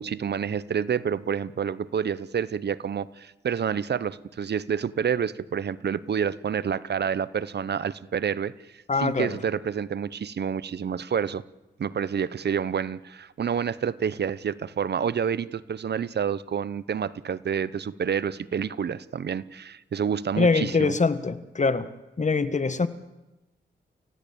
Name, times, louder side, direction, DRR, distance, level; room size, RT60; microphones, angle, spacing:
voice 1, 0.0-11.4 11.8-21.0, right 7 dB, 60° right, 17 dB, 0.9 m, -28 dB
voice 2, 8.9-9.4 20.4-21.9 22.2-22.9, left 4 dB, 40° left, 12 dB, 1.7 m, -23 dB
29.0 x 16.0 x 8.6 m, 1.0 s
cardioid pair, 70°, 19 cm